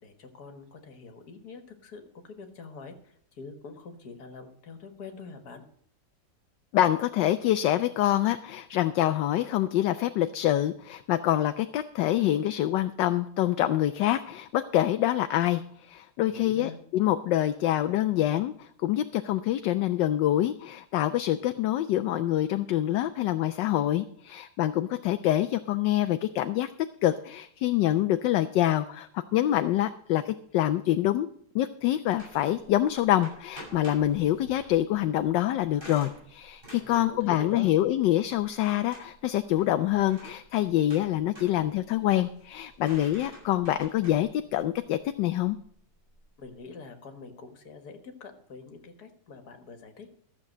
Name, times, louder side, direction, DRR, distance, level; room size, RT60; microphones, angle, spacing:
voice 1, 0.0-5.6 16.3-16.8 36.8-37.7 46.4-50.1, left 4 dB, 60° left, 6 dB, 2.1 m, -44 dB
voice 2, 6.7-26.7 27.0-31.3 31.5-45.6, left 13 dB, 80° left, 10 dB, 1.3 m, -26 dB
sound 1, 32.1-46.6, right 1 dB, 25° right, 7.4 m, -50 dB
14.0 x 7.3 x 6.5 m, 0.63 s
omnidirectional pair, 2.0 m